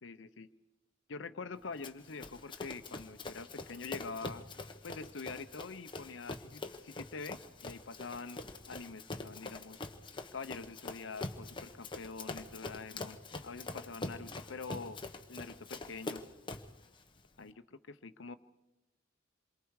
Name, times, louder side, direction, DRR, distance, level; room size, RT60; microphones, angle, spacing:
voice 1, 0.0-0.5 1.1-4.4 4.8-8.4 8.7-9.8 10.3-13.2 13.4-15.0 15.3-16.2 17.4-18.3, left 4 dB, 70° left, 10 dB, 0.8 m, -45 dB
Run, 1.8-16.8, left 2 dB, 25° left, 1.1 m, -44 dB
27.5 x 23.0 x 4.8 m, 0.98 s
head